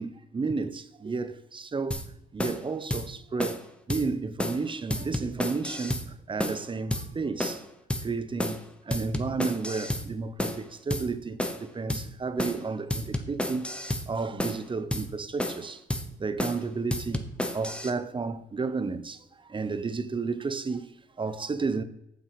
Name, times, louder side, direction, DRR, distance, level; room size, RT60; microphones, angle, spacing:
voice 1, 0.0-2.0 2.3-3.6 3.9-7.6 8.0-13.7 14.1-15.8 16.2-20.9 21.2-21.8, right 4 dB, 25° right, 0.6 m, -32 dB
sound 1, 1.9-2.1 2.4-2.6 2.9-3.1 3.4-3.6 3.9-4.1 4.4-4.6 4.9-6.1 6.4-6.6 6.9-7.1 7.4-7.6 7.9-8.1 8.4-8.6 8.9-10.1 10.4-10.6 10.9-11.1 11.4-11.6 11.9-12.1 12.4-12.6 12.9-14.1 14.4-14.6 14.9-15.1 15.4-15.6 15.9-16.1 16.4-16.6 16.9-17.9, left 1 dB, 5° left, 0.9 m, -31 dB
7.5 x 5.9 x 5.0 m
cardioid pair, 90°, 20 cm